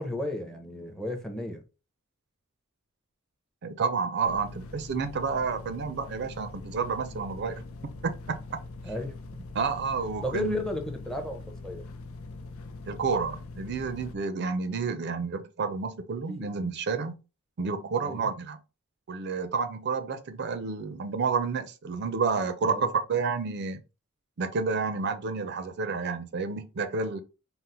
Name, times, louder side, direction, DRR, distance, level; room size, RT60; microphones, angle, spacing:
voice 1, 0.0-1.6 8.8-9.1 10.2-11.9 16.3-16.5 18.0-18.3 22.6-22.9, left 1 dB, 5° left, 0.6 m, -34 dB
voice 2, 3.6-7.6 8.0-8.6 9.5-10.7 12.9-17.1 17.6-18.6 19.1-23.8 24.4-27.2, right 5 dB, 55° right, 0.5 m, -30 dB
sound 1, 4.2-14.1, left 3 dB, 80° left, 0.6 m, -43 dB
3.8 x 2.0 x 4.2 m
head